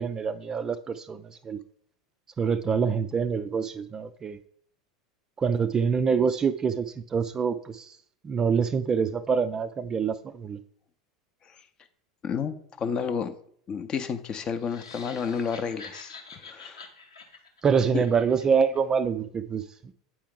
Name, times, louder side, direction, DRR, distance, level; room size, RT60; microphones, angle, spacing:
voice 1, 0.0-1.6 2.4-4.4 5.4-8.0 8.2-10.6 17.6-19.9, right 6 dB, 25° right, 11 dB, 0.3 m, -26 dB
voice 2, 12.2-13.4 13.7-16.8 17.9-18.0, left 6 dB, 30° left, 11 dB, 0.6 m, -31 dB
sound 1, 14.6-18.8, left 4 dB, 75° left, 0.9 m, -47 dB
8.4 x 4.6 x 3.6 m, 0.63 s
figure-of-eight pair, 80°, 3 cm